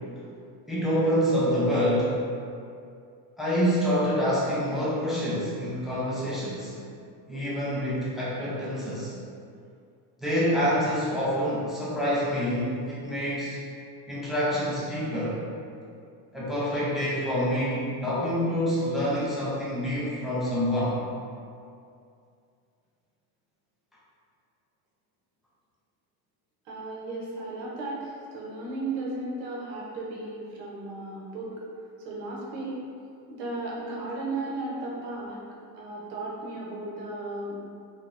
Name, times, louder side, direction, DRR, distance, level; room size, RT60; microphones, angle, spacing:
voice 1, 0.7-2.2 3.4-6.7 7.3-9.1 10.2-13.6 14.1-15.4 16.3-21.0, equal, ahead, -9 dB, 0.4 m, -27 dB
voice 2, 26.7-31.6 32.0-32.8 33.3-35.4 35.7-37.6, right 2 dB, 80° right, -4 dB, 0.9 m, -35 dB
3.1 x 2.0 x 2.4 m, 2.4 s
supercardioid pair, 110°, 47 cm